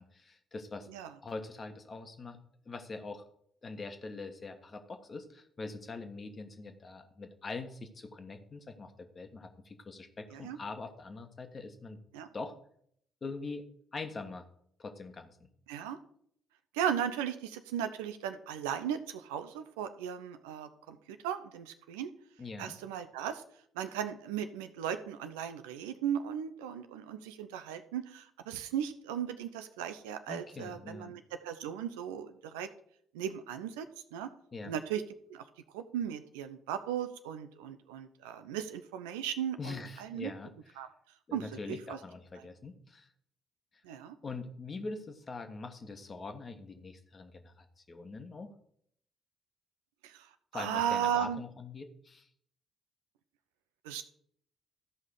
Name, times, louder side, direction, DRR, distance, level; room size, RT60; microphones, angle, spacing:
voice 1, 0.0-0.9 1.2-2.4 2.6-3.2 3.6-12.0 12.3-12.5 13.2-13.6 13.9-14.5 14.8-15.5 22.4-22.8 30.3-31.2 34.5-34.7 39.6-40.5 41.3-43.1 44.2-48.5 50.5-52.3, left 3 dB, 35° left, 7 dB, 1.4 m, -43 dB
voice 2, 15.7-16.0 16.7-22.1 22.6-23.4 23.7-32.7 33.1-33.9 34.1-34.3 34.6-35.0 35.3-35.4 35.7-40.3 40.8-40.9 41.3-42.0 42.4-42.5 43.8-44.2 50.0-51.4 53.8-54.0, right 9 dB, 70° right, 9 dB, 0.6 m, -36 dB
14.0 x 5.5 x 4.9 m, 0.67 s
figure-of-eight pair, 45°, 0 cm